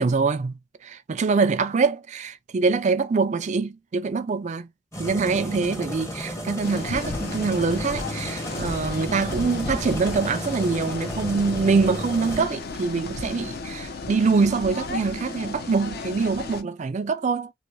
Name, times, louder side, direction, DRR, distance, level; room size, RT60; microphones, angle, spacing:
voice 1, 0.0-4.7 5.0-17.5, right 4 dB, 40° right, 0.4 m, -24 dB
sound 1, 4.9-12.4, equal, 15° left, 1.0 m, -33 dB
sound 2, 6.6-16.6, left 3 dB, 55° left, 0.6 m, -34 dB
2.6 x 2.5 x 3.0 m
head